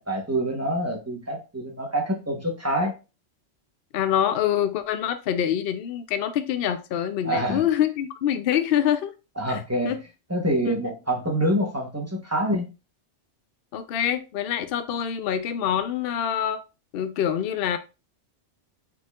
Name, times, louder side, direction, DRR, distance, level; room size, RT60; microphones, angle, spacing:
voice 1, 0.0-2.9 7.2-7.6 9.4-9.9 10.3-12.7, equal, 15° right, 1.0 m, -26 dB
voice 2, 3.9-9.1 9.5-9.6 9.8-10.0 10.7-10.8 13.7-16.6 16.9-17.8, left 10 dB, 60° left, 0.7 m, -25 dB
4.4 x 4.4 x 2.3 m
omnidirectional pair, 1.2 m